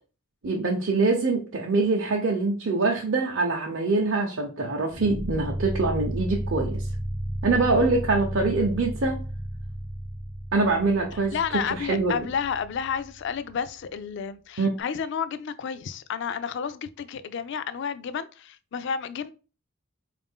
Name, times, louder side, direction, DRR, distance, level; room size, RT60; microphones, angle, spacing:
voice 1, 0.4-6.8 7.4-9.2 10.5-12.2 14.6-14.7, right 3 dB, 55° right, 0.6 m, -24 dB
sound 1, 4.9-14.0, right 1 dB, 20° right, 0.4 m, -34 dB
voice 2, 11.3-19.3, left 7 dB, 55° left, 0.3 m, -31 dB
4.1 x 2.5 x 3.6 m
head